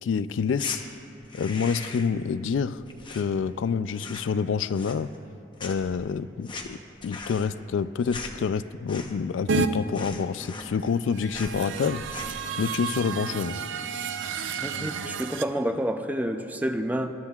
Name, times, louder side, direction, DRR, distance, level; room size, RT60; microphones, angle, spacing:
voice 1, 0.0-0.8 1.3-2.8 3.1-5.1 5.6-6.8 7.0-12.0 12.3-13.6, left 6 dB, 90° left, 15 dB, 0.3 m, -27 dB
sound 1, 0.6-0.8 1.2-2.2 2.4-3.6 3.9-4.4 4.7-5.3 5.6-9.4 9.6-9.7 9.9-11.0 11.3-11.6 12.0-12.5, left 4 dB, 25° left, 0.8 m, -40 dB
sound 2, 9.5-9.7 11.1-15.4, right 5 dB, 85° right, 0.5 m, -31 dB
voice 2, 14.6-17.1, equal, 10° right, 7 dB, 0.4 m, -29 dB
20.5 x 11.5 x 2.4 m, 3.0 s
head